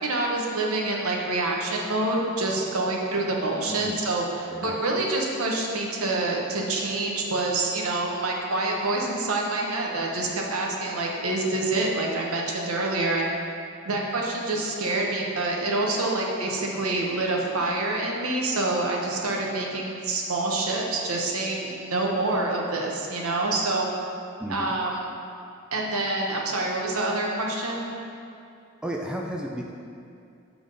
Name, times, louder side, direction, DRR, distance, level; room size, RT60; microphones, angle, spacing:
voice 1, 0.0-13.3 13.8-23.9 24.5-24.9 25.7-28.0, right 2 dB, 85° right, -1 dB, 1.0 m, -27 dB
voice 2, 3.7-4.1 4.5-5.0 24.4-24.7 28.8-29.7, right 1 dB, 5° right, -1 dB, 0.3 m, -33 dB
7.2 x 3.6 x 5.3 m, 2.6 s
head